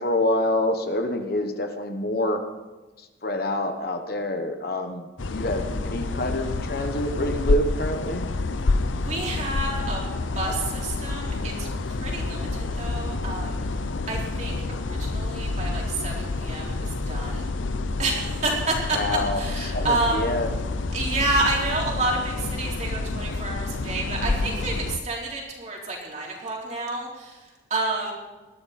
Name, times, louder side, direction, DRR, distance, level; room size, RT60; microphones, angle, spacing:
voice 1, 0.0-2.4 3.2-8.3 18.9-20.6, left 1 dB, 50° left, 6 dB, 1.2 m, -27 dB
sound 1, 5.2-25.0, left 3 dB, 80° left, 0.7 m, -28 dB
voice 2, 9.0-10.0 10.4-13.7 14.1-17.5 18.0-19.0 19.4-20.4 20.9-28.1, right 2 dB, 35° right, -2 dB, 3.8 m, -29 dB
20.5 x 13.5 x 4.3 m, 1.2 s
head